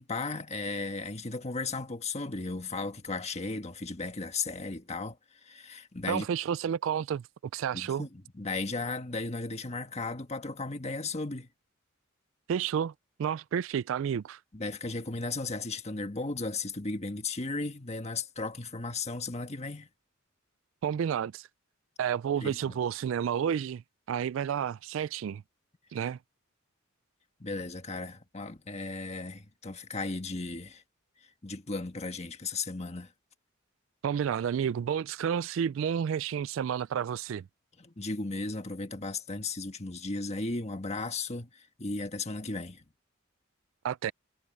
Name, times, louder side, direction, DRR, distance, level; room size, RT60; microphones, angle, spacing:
voice 1, 0.0-5.2 5.4-6.3 7.7-11.5 14.5-19.9 22.4-22.7 27.4-30.8 31.4-33.1 37.8-42.8, left 3 dB, 30° left, 1.5 m, -35 dB
voice 2, 6.1-7.2 7.5-8.1 12.5-12.9 13.2-14.4 20.8-21.5 22.0-23.8 24.1-25.4 25.9-26.2 34.0-37.5 43.8-44.1, right 8 dB, 65° right, 0.3 m, -30 dB
head